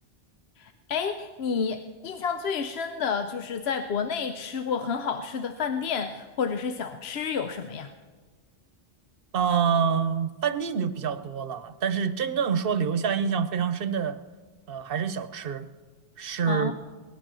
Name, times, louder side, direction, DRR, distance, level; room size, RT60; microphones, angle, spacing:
voice 1, 0.6-7.9 16.5-16.7, left 6 dB, 75° left, 8 dB, 1.0 m, -30 dB
voice 2, 9.3-14.2 14.7-15.7 16.2-16.7, right 7 dB, 65° right, 12 dB, 0.9 m, -26 dB
18.5 x 11.5 x 6.2 m, 1.4 s
omnidirectional pair, 1.1 m